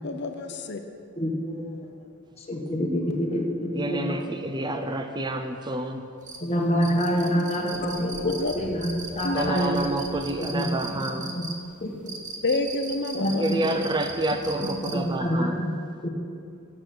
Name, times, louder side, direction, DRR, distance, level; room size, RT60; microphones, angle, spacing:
voice 1, 0.0-0.8 8.4-8.5 9.2-9.4 12.4-13.4, left 2 dB, 55° left, 6 dB, 0.7 m, -28 dB
voice 2, 1.2-1.9 2.4-4.2 6.4-9.9 10.4-10.6 11.1-11.4 11.8-12.2 13.1-13.8 14.6-15.7 16.0-16.1, equal, 30° left, 0 dB, 1.4 m, -27 dB
voice 3, 3.7-6.0 9.3-11.3 13.4-15.5, right 2 dB, 20° right, 6 dB, 0.6 m, -28 dB
sound 1, 6.2-15.2, right 3 dB, 35° right, 1.2 m, -38 dB
13.5 x 6.8 x 6.1 m, 2.4 s
head